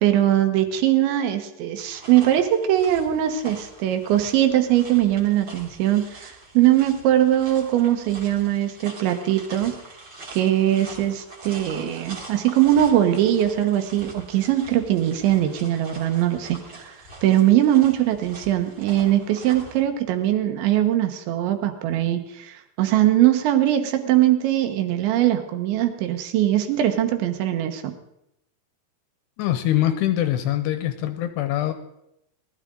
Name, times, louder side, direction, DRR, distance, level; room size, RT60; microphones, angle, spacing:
voice 1, 0.0-9.7 10.3-16.9 17.2-27.9, right 12 dB, 75° right, 7 dB, 3.3 m, -21 dB
Walking On Unpaved Road, 1.8-19.8, right 2 dB, 30° right, 2.4 m, -43 dB
voice 2, 29.4-31.7, left 13 dB, 80° left, 9 dB, 2.5 m, -23 dB
19.5 x 13.0 x 3.8 m, 0.82 s
omnidirectional pair, 5.5 m